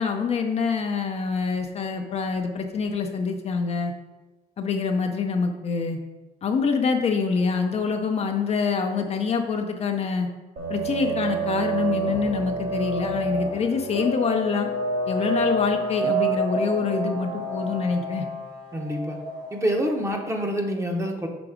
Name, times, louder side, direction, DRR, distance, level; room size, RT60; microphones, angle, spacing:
voice 1, 0.0-3.9 4.6-6.0 6.4-10.3 10.7-14.7 15.1-18.2, left 5 dB, 40° left, 4 dB, 0.6 m, -25 dB
sound 1, 10.6-19.8, right 2 dB, 65° right, 1.8 m, -28 dB
voice 2, 18.7-19.2 19.5-21.3, equal, 15° right, 2 dB, 0.9 m, -26 dB
6.0 x 3.8 x 5.0 m, 1.1 s
cardioid pair, 110°, 17 cm